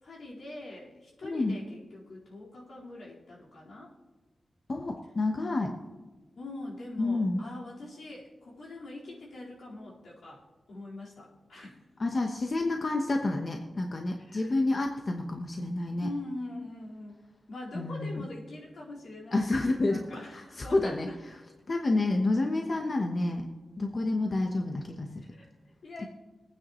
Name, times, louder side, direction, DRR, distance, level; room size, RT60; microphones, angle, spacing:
voice 1, 0.0-3.9 6.3-10.4 10.7-11.8 14.1-14.6 15.9-21.2 25.3-26.1, left 2 dB, 80° left, -6 dB, 4.1 m, -43 dB
voice 2, 1.2-1.6 4.7-5.7 7.0-7.4 12.0-16.1 17.7-18.2 19.3-20.0 20.3-21.1 21.7-23.5 23.8-25.1, left 2 dB, 40° left, 3 dB, 1.0 m, -29 dB
22.0 x 9.5 x 3.1 m, 1.2 s
wide cardioid pair, 105°, 0 cm